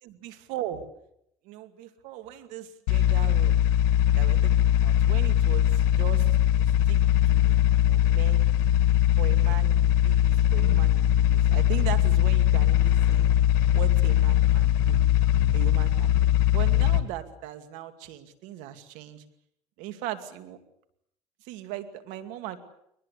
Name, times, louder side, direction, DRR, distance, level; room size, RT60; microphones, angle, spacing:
voice 1, 0.0-0.9 1.4-3.6 4.2-7.0 7.3-8.5 9.2-13.3 13.7-15.0 15.5-19.2 19.8-20.6 21.4-22.6, right 12 dB, 85° right, 9 dB, 2.5 m, -39 dB
sound 1, 2.9-17.0, left 12 dB, 90° left, 1.7 m, -21 dB
22.5 x 20.5 x 8.4 m, 0.75 s
cardioid pair, 120°, 13 cm